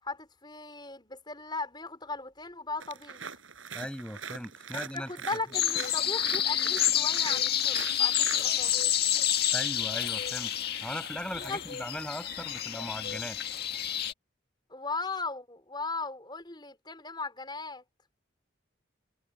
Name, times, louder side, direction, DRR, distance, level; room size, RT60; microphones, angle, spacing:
voice 1, 0.0-3.2 4.9-8.7 11.3-11.6 14.7-17.8, left 3 dB, 20° left, 5.0 m, -37 dB
sound 1, 2.8-8.5, right 6 dB, 80° right, 6.1 m, -42 dB
voice 2, 3.7-5.1 9.5-10.5 10.8-13.4, equal, 5° left, 7.5 m, -38 dB
sound 2, 5.5-14.1, left 10 dB, 50° left, 1.9 m, -29 dB
head